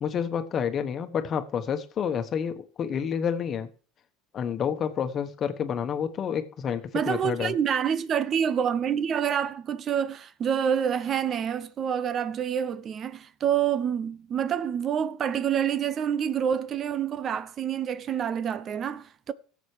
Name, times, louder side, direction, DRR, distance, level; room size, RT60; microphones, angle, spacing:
voice 1, 0.0-3.7 4.3-7.5, left 7 dB, 40° left, 1.2 m, -29 dB
voice 2, 6.9-19.3, right 8 dB, 40° right, 0.6 m, -27 dB
17.0 x 7.3 x 3.3 m
hypercardioid pair, 80°, 0 cm